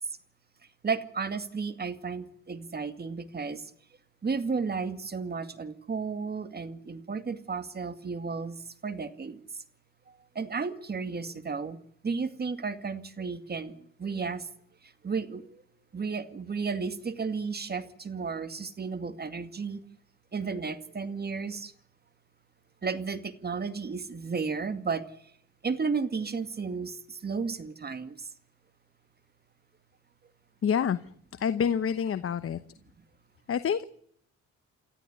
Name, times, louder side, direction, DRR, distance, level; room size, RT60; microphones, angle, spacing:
voice 1, 0.8-3.6 4.2-9.4 10.4-11.8 12.0-14.5 15.0-15.5 15.9-19.8 20.3-21.7 22.8-25.0 25.6-28.2, right 5 dB, 30° right, 11 dB, 2.2 m, -33 dB
voice 2, 30.6-32.6 33.5-33.8, left 7 dB, 50° left, 12 dB, 1.0 m, -28 dB
29.5 x 13.5 x 8.4 m, 0.67 s
cardioid pair, 90°, 30 cm